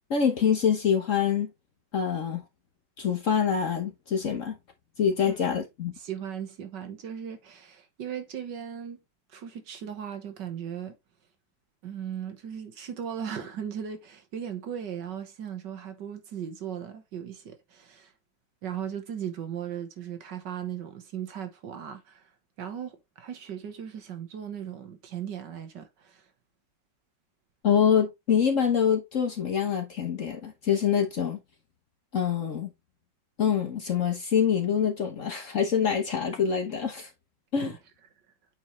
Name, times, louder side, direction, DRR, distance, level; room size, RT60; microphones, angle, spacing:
voice 1, 0.1-1.5 1.9-2.4 3.0-4.6 5.0-5.9 27.6-31.4 32.1-32.7 33.4-37.1 37.5-37.7, left 7 dB, 50° left, 1.2 m, -25 dB
voice 2, 6.0-9.0 9.3-11.0 11.8-18.1 18.6-22.2 22.6-26.2 37.6-37.8, right 8 dB, 65° right, 1.8 m, -37 dB
8.4 x 4.7 x 3.2 m
omnidirectional pair, 2.1 m